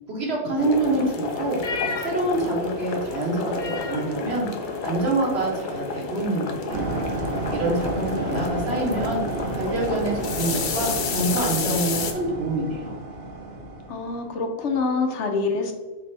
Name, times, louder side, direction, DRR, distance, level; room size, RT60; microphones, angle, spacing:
voice 1, 0.1-1.6 2.0-4.5 4.8-6.9 7.5-9.2 9.5-12.9, right 2 dB, 65° right, -2 dB, 1.4 m, -26 dB
sound 1, 0.6-12.1, left 4 dB, 55° left, 0.6 m, -30 dB
sound 2, 6.7-14.3, right 2 dB, 45° right, 0.8 m, -32 dB
voice 2, 13.9-15.7, left 4 dB, 75° left, 4 dB, 1.0 m, -25 dB
4.1 x 3.3 x 3.3 m, 1.3 s
omnidirectional pair, 1.2 m